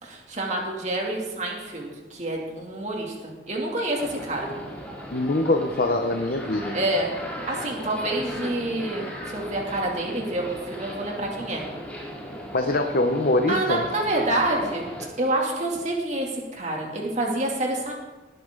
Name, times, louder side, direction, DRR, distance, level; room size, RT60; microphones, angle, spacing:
voice 1, 0.0-4.5 6.7-7.1 7.5-11.6 13.5-14.9 15.2-17.9, right 1 dB, 35° right, -1 dB, 2.8 m, -27 dB
sound 1, 4.0-15.1, equal, 10° left, 2.6 m, -37 dB
voice 2, 5.1-6.8 12.5-13.8, left 2 dB, 50° left, 5 dB, 0.9 m, -23 dB
19.0 x 9.7 x 3.9 m, 1.2 s
head